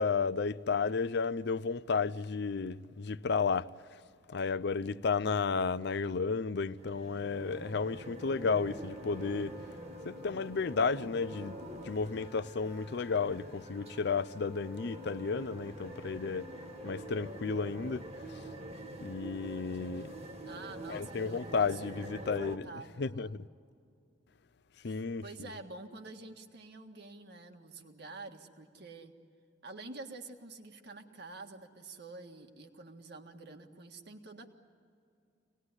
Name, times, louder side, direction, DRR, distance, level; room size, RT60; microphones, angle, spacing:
voice 1, 0.0-3.7 4.3-9.6 10.0-11.6 11.8-16.5 16.8-18.1 19.0-20.2 20.9-22.7 23.0-23.4 24.8-25.2, left 4 dB, 65° left, 0.6 m, -32 dB
sound 1, 6.8-22.6, right 1 dB, 35° right, 1.7 m, -46 dB
Wind instrument woodwind instrument, 8.3-18.2, left 4 dB, 5° left, 1.6 m, -55 dB
voice 2, 20.4-23.4 24.8-29.1 29.6-34.5, right 3 dB, 65° right, 1.8 m, -48 dB
26.5 x 19.5 x 9.8 m
head